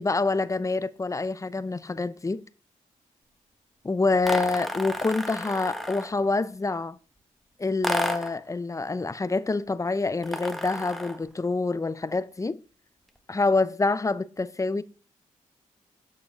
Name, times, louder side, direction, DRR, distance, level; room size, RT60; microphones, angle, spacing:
voice 1, 0.0-2.4 3.8-7.0 7.6-12.6 13.3-14.8, left 3 dB, 20° left, 0.6 m, -26 dB
sound 1, 4.2-6.2 7.8-8.4 10.2-11.3, equal, ahead, 1.3 m, -32 dB
7.3 x 6.4 x 3.6 m
supercardioid pair, 50°, 14 cm